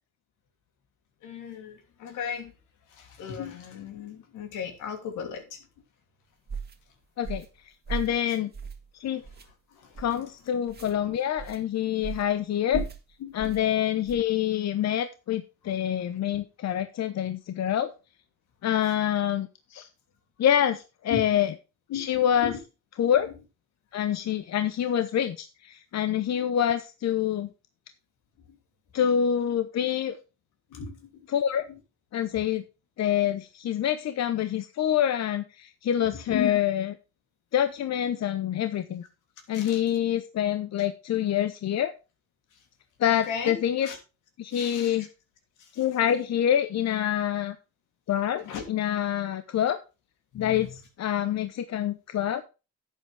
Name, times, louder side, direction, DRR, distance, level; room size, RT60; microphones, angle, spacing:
voice 1, 1.2-2.5 3.0-5.4 12.7-12.8 13.2-13.4 21.1-21.2 21.9-22.1 22.4-22.5 30.7-31.0 36.3-36.6 39.5-39.8 43.1-43.5 43.8-44.0 44.5-45.0 48.4-48.6 50.3-50.7, left 8 dB, 85° left, 5 dB, 3.0 m, -35 dB
sound 1, 6.5-6.8 7.2-7.5 7.9-8.2 8.5-8.9 9.2-9.5 9.9-10.2 10.7-10.9 11.4-11.6 12.0-12.3 12.7-13.0 13.4-13.6 14.0-14.3, right 6 dB, 30° right, 1.8 m, -36 dB
voice 2, 7.9-8.5 9.0-9.2 10.0-12.8 13.3-17.9 18.6-19.9 20.4-21.5 21.9-22.6 23.0-23.3 23.9-27.5 28.9-30.2 31.3-31.6 32.1-32.6 33.0-36.9 37.5-39.0 39.5-41.9 43.0-43.9 44.4-45.1 45.7-47.6 48.1-49.8 50.3-52.4, left 10 dB, 60° left, 10 dB, 0.9 m, -26 dB
11.0 x 8.4 x 3.4 m, 0.29 s
cardioid pair, 90°, 30 cm